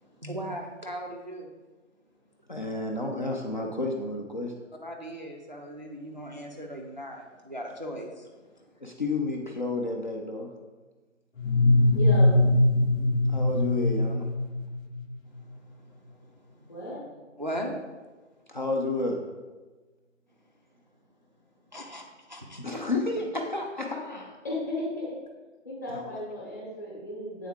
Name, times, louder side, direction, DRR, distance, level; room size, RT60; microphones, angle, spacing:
voice 1, 0.2-1.5 4.8-8.3 17.4-17.8 21.7-22.0 22.3-22.9, equal, 35° right, 1 dB, 0.4 m, -38 dB
voice 2, 2.5-4.5 8.8-10.5 13.3-14.3 18.5-19.2 22.6-24.4 25.9-26.1, left 2 dB, 40° left, 0 dB, 0.5 m, -31 dB
sound 1, 11.4-15.1, left 2 dB, 80° left, 0.9 m, -22 dB
voice 3, 11.9-12.4 16.7-17.1 24.4-25.1 25.6-27.5, left 1 dB, 15° left, -6 dB, 0.9 m, -34 dB
8.2 x 3.6 x 3.5 m, 1.3 s
figure-of-eight pair, 165°, 39 cm